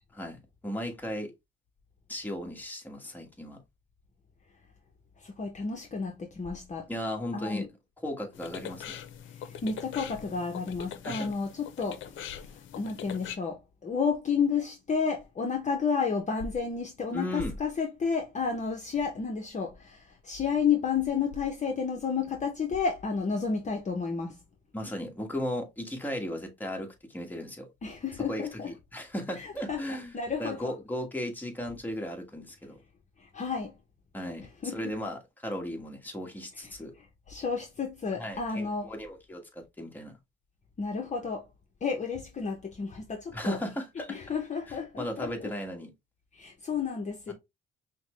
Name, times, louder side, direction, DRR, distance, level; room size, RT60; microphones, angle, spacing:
voice 1, 0.1-1.3 2.1-3.6 6.9-7.7 8.0-8.9 11.0-11.3 17.1-17.5 24.7-27.7 28.3-32.8 34.1-34.5 34.7-36.9 38.2-40.1 43.3-44.1 45.0-45.9 47.3-47.4, equal, 10° left, 1.3 m, -36 dB
voice 2, 5.2-6.9 7.3-7.7 9.4-24.4 27.8-28.7 29.4-30.7 33.2-33.7 34.6-34.9 36.6-36.7 37.3-38.9 40.8-41.4 41.8-43.6 44.1-45.5 46.3-47.3, left 5 dB, 35° left, 0.8 m, -31 dB
sound 1, 8.3-13.4, left 9 dB, 75° left, 0.6 m, -42 dB
5.6 x 2.2 x 3.0 m
cardioid pair, 90°, 20 cm